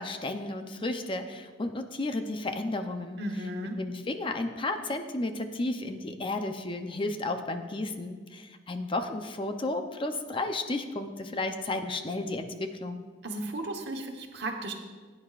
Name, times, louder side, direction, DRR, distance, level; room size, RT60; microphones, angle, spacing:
voice 1, 0.0-3.2 3.8-13.0, left 2 dB, 30° left, 7 dB, 0.6 m, -33 dB
voice 2, 3.2-3.8 13.2-14.7, right 1 dB, 65° right, 3 dB, 1.2 m, -35 dB
16.0 x 9.5 x 2.4 m, 1.4 s
head